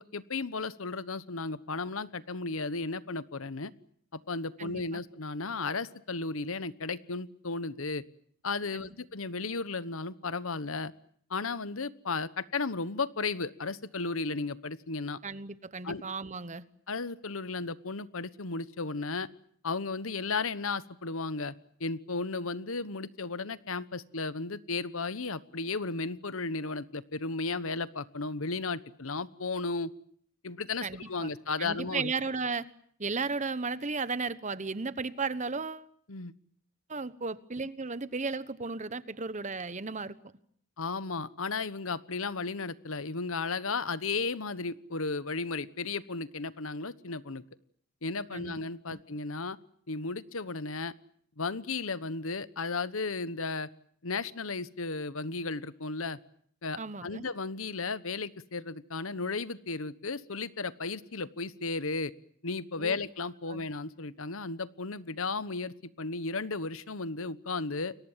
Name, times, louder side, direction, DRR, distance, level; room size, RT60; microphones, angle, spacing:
voice 1, 0.0-3.7 4.1-8.0 8.4-10.9 11.3-15.2 15.8-16.0 16.9-19.3 19.6-21.5 21.8-29.9 30.4-32.1 36.1-36.3 40.8-47.4 48.0-49.6 49.9-50.9 51.4-53.7 54.0-56.2 56.6-62.1 62.4-68.0, left 3 dB, 75° left, 1.2 m, -34 dB
voice 2, 4.6-5.0 8.7-9.0 15.2-16.6 30.8-31.3 31.6-32.7 33.0-35.9 36.9-40.2 48.3-48.5 48.9-49.0 56.8-57.3 62.8-63.0 63.5-63.7, right 4 dB, 35° right, 1.1 m, -35 dB
30.0 x 23.0 x 7.4 m
head